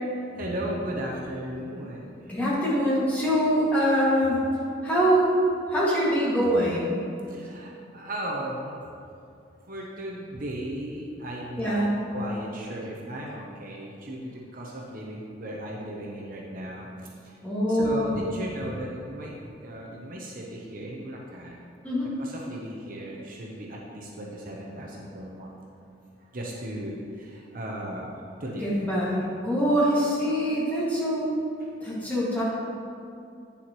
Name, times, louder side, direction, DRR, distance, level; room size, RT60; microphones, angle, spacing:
voice 1, 0.3-2.4 7.3-8.8 9.7-17.4 17.7-21.6 22.2-25.5 26.3-28.7, right 1 dB, 45° right, -2 dB, 0.8 m, -36 dB
voice 2, 2.3-4.4 4.8-5.4 5.7-7.0 11.6-11.9 17.4-18.1 21.8-22.1 28.6-31.3 31.8-32.4, equal, 10° left, -9 dB, 2.0 m, -24 dB
9.3 x 6.9 x 3.0 m, 2.6 s
head